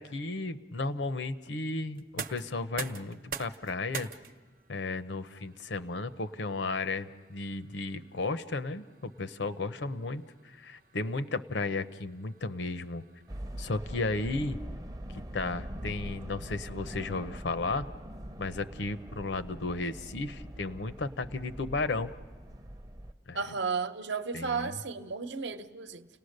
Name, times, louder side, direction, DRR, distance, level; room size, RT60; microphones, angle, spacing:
voice 1, 0.0-4.1 4.7-13.0 13.6-14.6 15.1-17.9 18.4-22.1 23.3-23.4 24.3-24.7, left 3 dB, 75° left, 0.8 m, -34 dB
sound 1, 1.9-13.7, right 6 dB, 45° right, 0.8 m, -47 dB
sound 2, 13.3-23.1, right 1 dB, 20° right, 0.6 m, -43 dB
voice 2, 23.3-26.1, right 5 dB, 75° right, 0.9 m, -33 dB
30.0 x 18.5 x 6.6 m
head